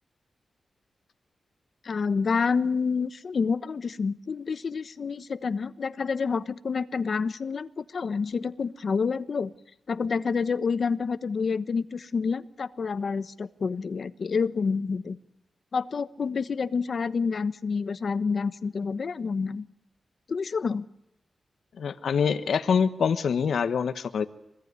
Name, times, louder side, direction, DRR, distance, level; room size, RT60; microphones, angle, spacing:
voice 1, 1.8-9.5 9.9-15.2 15.7-19.6 20.3-20.8, left 5 dB, 55° left, 13 dB, 1.2 m, -28 dB
voice 2, 21.8-24.3, left 6 dB, 85° left, 11 dB, 1.3 m, -25 dB
26.5 x 20.5 x 9.7 m, 0.83 s
wide cardioid pair, 145°, 0 cm